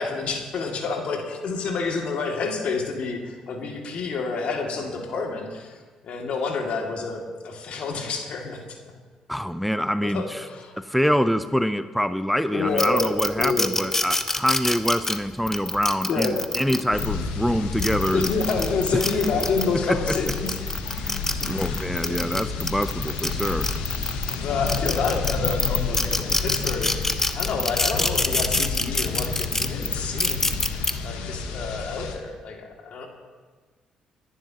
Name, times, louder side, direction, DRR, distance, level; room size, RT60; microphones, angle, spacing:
voice 1, 0.0-5.8 6.0-8.9 10.0-10.8 12.5-13.7 16.1-16.8 18.1-20.6 21.4-22.2 24.4-27.0 27.3-30.6 31.0-33.1, left 4 dB, 65° left, 1 dB, 2.4 m, -28 dB
voice 2, 9.3-10.4 10.8-18.3 18.9-19.0 19.9-20.2 21.0-23.7, equal, ahead, 11 dB, 0.6 m, -25 dB
sound 1, 12.8-17.1 17.6-19.7 20.1-24.3 24.7-30.9, left 2 dB, 15° left, 1.1 m, -26 dB
sound 2, 16.9-32.1, left 5 dB, 85° left, 1.4 m, -31 dB
29.5 x 10.5 x 3.0 m, 1.5 s
supercardioid pair, 55°, 2 cm